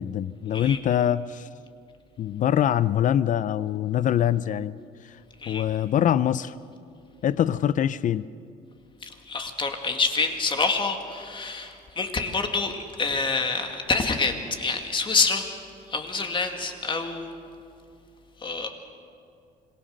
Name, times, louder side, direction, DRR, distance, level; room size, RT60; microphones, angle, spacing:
voice 1, 0.0-1.4 2.2-4.8 5.5-6.5 7.2-8.2, left 10 dB, 50° left, 0.6 m, -24 dB
voice 2, 9.0-15.5 15.9-17.3 18.4-18.7, left 4 dB, 30° left, 2.2 m, -27 dB
26.0 x 19.5 x 6.5 m
cardioid pair, 110°, 17 cm